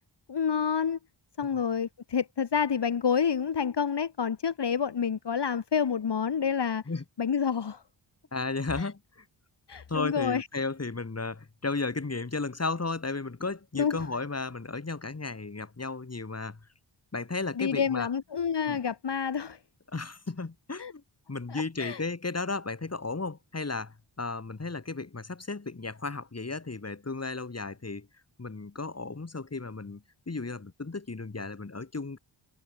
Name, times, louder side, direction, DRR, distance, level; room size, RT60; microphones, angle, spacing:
voice 1, 0.3-1.0 1.4-6.8 7.2-7.8 8.8-8.9 9.7-10.5 13.8-14.1 17.6-19.6 20.8-20.9 21.5-22.0, left 7 dB, 60° left, 1.9 m, -28 dB
voice 2, 8.3-9.2 9.9-16.6 17.1-18.1 18.7-18.8 19.9-21.0 21.3-28.1 28.4-32.2, left 3 dB, 30° left, 3.3 m, -34 dB
cardioid pair, 65°, 47 cm